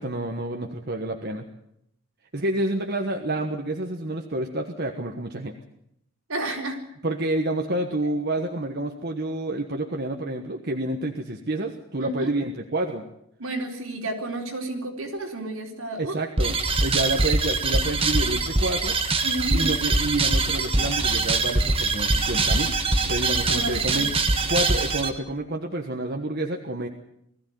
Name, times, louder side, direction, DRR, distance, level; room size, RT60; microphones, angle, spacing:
voice 1, 0.0-1.5 2.3-5.6 7.0-13.1 16.0-19.0 19.5-22.8 23.1-24.1 24.5-26.9, right 1 dB, 50° right, 3 dB, 1.3 m, -28 dB
voice 2, 6.3-6.8 8.0-8.1 12.0-12.3 13.4-16.2 19.2-19.8 23.4-24.1, right 2 dB, 75° right, 1 dB, 4.1 m, -31 dB
sound 1, 16.4-25.1, right 3 dB, 25° right, 1.4 m, -23 dB
20.5 x 14.5 x 9.4 m, 0.77 s
head